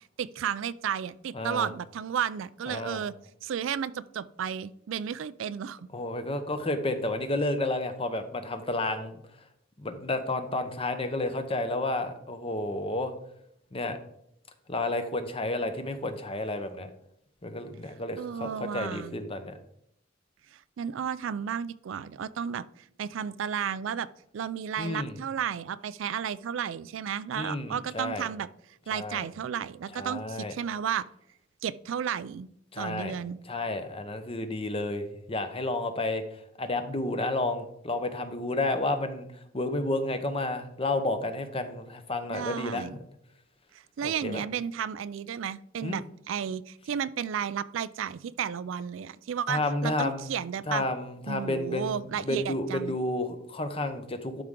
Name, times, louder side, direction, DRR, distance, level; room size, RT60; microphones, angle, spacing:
voice 1, 0.2-3.1 3.4-5.8 18.2-19.2 20.8-22.7 23.0-24.1 24.3-28.5 28.9-31.0 31.6-32.5 32.8-33.4 42.3-43.0 44.0-50.9 51.3-53.0, right 8 dB, 70° right, 17 dB, 0.3 m, -33 dB
voice 2, 1.3-1.7 2.7-3.0 5.9-9.2 9.8-13.1 13.7-14.0 14.7-16.9 17.4-19.5 24.8-25.2 27.3-28.3 28.9-29.2 29.9-30.5 32.7-33.1 33.5-36.2 36.6-39.3 39.5-42.9 44.0-44.4 45.8-46.0 49.5-50.3 50.7-54.4, left 2 dB, 30° left, 8 dB, 0.8 m, -31 dB
12.0 x 4.9 x 3.7 m, 0.73 s
head